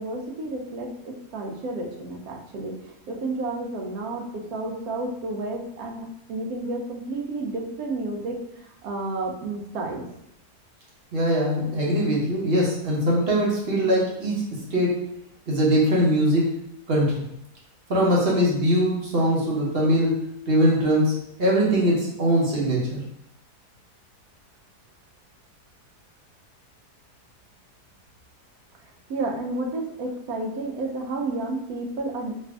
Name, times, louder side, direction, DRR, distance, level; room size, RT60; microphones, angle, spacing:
voice 1, 0.0-10.1 29.1-32.3, right 2 dB, 70° right, 1 dB, 1.1 m, -31 dB
voice 2, 11.1-14.4 14.7-15.1 15.5-16.6 16.9-17.2 17.9-23.0, equal, 45° right, -4 dB, 0.9 m, -22 dB
3.3 x 2.6 x 3.3 m, 0.76 s
omnidirectional pair, 1.7 m